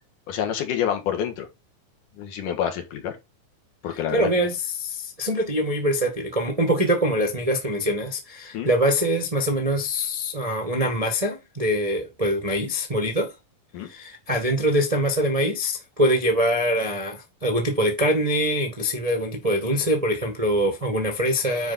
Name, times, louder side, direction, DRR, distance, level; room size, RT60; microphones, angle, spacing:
voice 1, 0.3-1.5 2.2-3.1 3.8-4.5 8.5-8.7 13.7-13.9, left 9 dB, 70° left, 2.9 m, -27 dB
voice 2, 3.9-13.3 13.8-21.7, equal, 35° right, 0.5 m, -24 dB
9.6 x 4.6 x 4.1 m
omnidirectional pair, 4.1 m